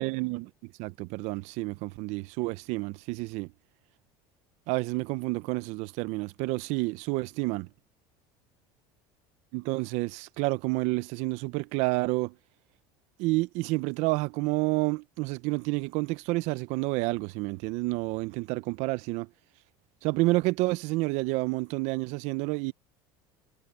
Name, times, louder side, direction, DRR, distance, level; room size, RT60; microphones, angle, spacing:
voice 1, 0.0-3.5 4.7-7.7 9.5-12.3 13.2-19.3 20.0-22.7, right 23 dB, 70° right, 0.7 m, -29 dB
supercardioid pair, 100°, 12 cm